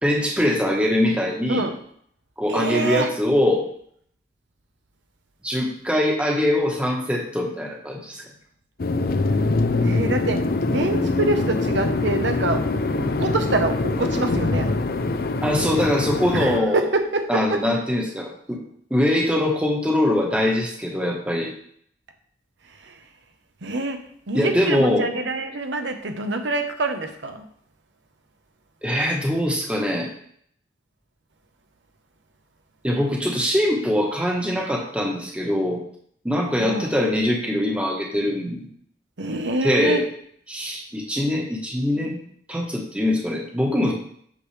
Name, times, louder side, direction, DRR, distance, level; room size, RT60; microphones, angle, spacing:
voice 1, 0.0-1.6 2.4-3.7 5.4-8.3 15.4-16.8 17.3-18.6 18.9-21.5 24.3-25.1 28.8-30.1 32.8-35.8 36.2-38.7 39.6-40.0 40.5-42.2 42.5-43.9, left 1 dB, 5° right, -1 dB, 1.2 m, -22 dB
voice 2, 2.5-3.1 9.8-12.7 13.0-14.7 16.3-17.6 22.7-23.0 23.6-27.5 36.6-36.9 39.2-40.1, right 2 dB, 80° right, 6 dB, 0.9 m, -26 dB
sound 1, 8.8-16.6, left 2 dB, 55° left, 0.5 m, -23 dB
8.5 x 6.4 x 3.3 m, 0.64 s
head